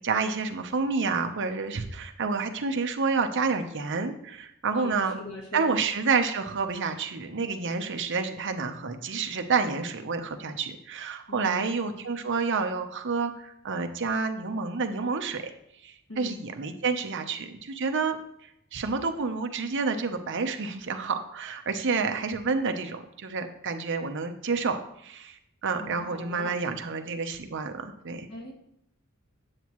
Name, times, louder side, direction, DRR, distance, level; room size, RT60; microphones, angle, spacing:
voice 1, 0.0-5.2 5.5-15.5 15.8-28.3, right 4 dB, 55° right, 6 dB, 0.8 m, -29 dB
voice 2, 4.7-5.8 11.3-11.7 16.1-16.4 25.8-26.7 28.3-28.6, left 3 dB, 80° left, -2 dB, 2.0 m, -41 dB
9.1 x 8.2 x 3.1 m, 0.75 s
head